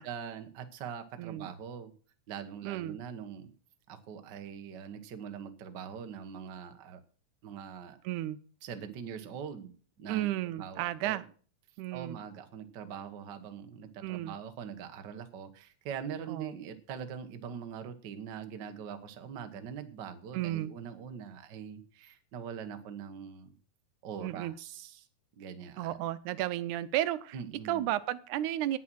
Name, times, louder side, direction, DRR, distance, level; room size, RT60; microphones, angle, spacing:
voice 1, 0.0-1.9 2.3-3.5 3.9-7.0 7.4-8.0 8.6-11.2 11.9-23.6 24.0-25.1 25.4-26.0 27.3-27.9, right 7 dB, 55° right, 8 dB, 1.2 m, -43 dB
voice 2, 1.2-1.5 2.7-3.0 8.0-8.4 10.1-11.2 11.8-12.2 14.0-14.4 16.3-16.6 20.3-20.7 24.2-24.5 25.8-27.4 27.7-28.8, right 14 dB, 85° right, 15 dB, 2.1 m, -33 dB
9.8 x 9.4 x 6.2 m, 0.43 s
omnidirectional pair, 3.4 m